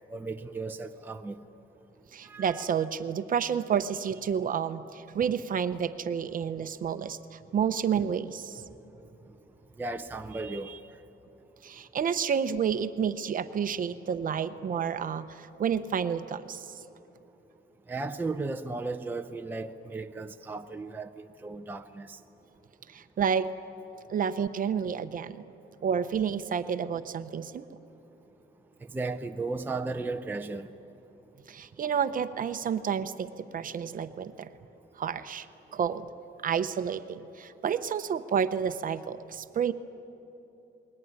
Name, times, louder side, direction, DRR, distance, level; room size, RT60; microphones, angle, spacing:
voice 1, 0.1-1.4 2.2-2.7 9.8-10.8 17.9-22.2 28.9-30.7, right 3 dB, 10° right, 0.6 m, -35 dB
voice 2, 2.1-8.6 11.6-16.7 22.9-23.5 24.1-25.4 25.8-27.6 31.5-34.5 35.0-35.5 35.7-36.1 36.4-39.7, right 7 dB, 40° right, 0.8 m, -30 dB
29.0 x 20.5 x 9.6 m
cardioid pair, 170°, 21 cm